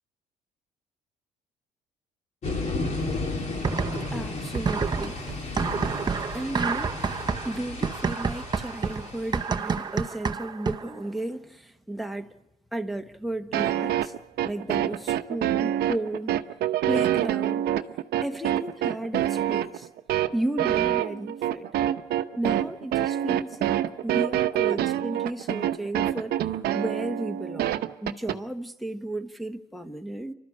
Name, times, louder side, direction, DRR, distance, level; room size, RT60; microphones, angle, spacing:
sound 1, 2.4-9.9, left 2 dB, 40° left, 2.6 m, -34 dB
sound 2, 3.6-4.2 4.5-11.0, right 5 dB, 25° right, 0.7 m, -29 dB
voice 1, 4.1-12.4 12.7-14.1 14.4-16.4 16.9-17.7 18.2-19.9 20.3-21.7 22.4-26.3 26.7-30.3, right 1 dB, ahead, 1.2 m, -34 dB
sound 3, 13.5-28.4, right 12 dB, 70° right, 0.9 m, -26 dB
29.5 x 12.5 x 8.6 m
cardioid pair, 110°, 17 cm